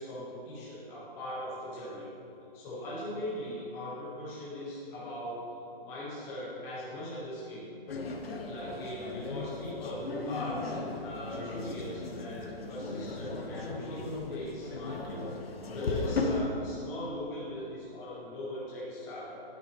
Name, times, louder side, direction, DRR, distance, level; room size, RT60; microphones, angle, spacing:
voice 1, 0.0-2.1 2.5-5.4 5.8-7.7 8.4-15.2 15.7-19.4, left 1 dB, 10° left, -8 dB, 1.3 m, -39 dB
sound 1, 7.9-16.4, left 3 dB, 85° left, 1.2 m, -37 dB
9.9 x 8.9 x 3.0 m, 2.7 s
hypercardioid pair, 175°, 29 cm